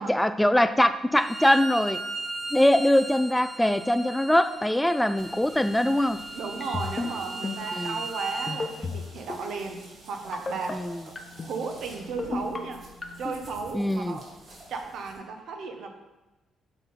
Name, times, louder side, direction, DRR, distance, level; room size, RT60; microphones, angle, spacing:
voice 1, 0.0-2.0 2.5-6.2 7.7-8.0 10.7-11.0 13.7-14.2, left 1 dB, 5° left, 11 dB, 0.3 m, -22 dB
Bowed string instrument, 1.1-8.6, right 2 dB, 20° right, 0.7 m, -37 dB
sound 1, 5.2-15.2, right 1 dB, 50° right, 2.5 m, -49 dB
voice 2, 6.3-11.1 11.5-12.8 13.2-14.2 14.7-15.9, right 4 dB, 75° right, 4 dB, 1.0 m, -35 dB
sound 2, 6.6-7.1 7.4-7.7 8.5-9.0 9.3-9.6 10.3-10.7 11.2-11.5 12.2-12.6 13.0-13.4, left 4 dB, 30° left, 0.9 m, -31 dB
8.1 x 3.9 x 5.6 m, 1.1 s
cardioid pair, 90°, 0 cm